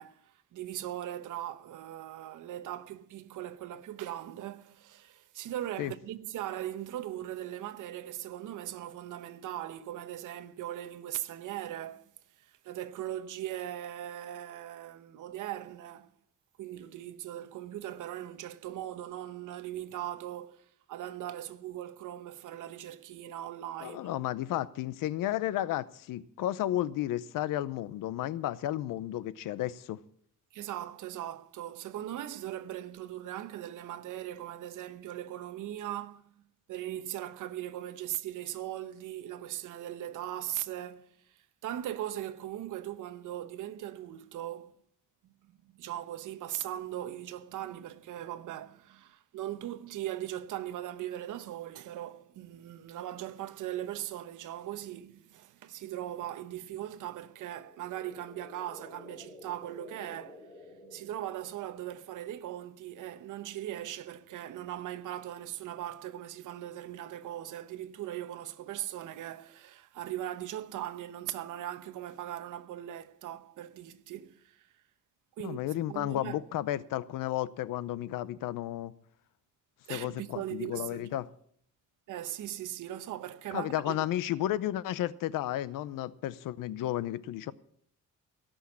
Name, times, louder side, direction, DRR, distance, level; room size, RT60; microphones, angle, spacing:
voice 1, 0.0-12.1 12.4-16.1 16.6-24.2 30.5-36.2 36.7-41.1 41.6-44.8 45.4-60.5 60.8-74.7 75.4-75.6 75.9-76.4 79.9-81.2 82.1-84.1, right 12 dB, 65° right, 1.0 m, -39 dB
voice 2, 23.8-30.0 75.4-78.9 79.9-81.3 83.5-87.5, left 13 dB, 75° left, 0.7 m, -33 dB
sound 1, 57.4-61.8, left 1 dB, 15° left, 1.7 m, -52 dB
17.5 x 6.4 x 8.4 m
cardioid pair, 165°, 33 cm